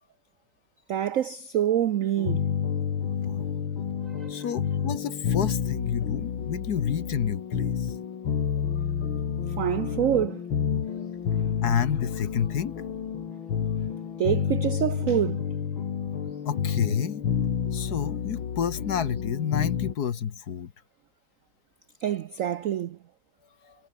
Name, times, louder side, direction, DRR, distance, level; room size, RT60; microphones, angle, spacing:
voice 1, 0.9-2.5 4.2-4.3 9.6-10.4 14.2-15.4 22.0-23.0, right 11 dB, 80° right, 0.7 m, -26 dB
sound 1, 2.2-19.9, left 7 dB, 80° left, 2.6 m, -29 dB
voice 2, 4.3-7.9 8.7-9.6 10.8-11.1 11.6-12.7 16.4-17.2 17.7-20.7 23.6-23.7, left 8 dB, 55° left, 1.7 m, -30 dB
omnidirectional pair, 2.2 m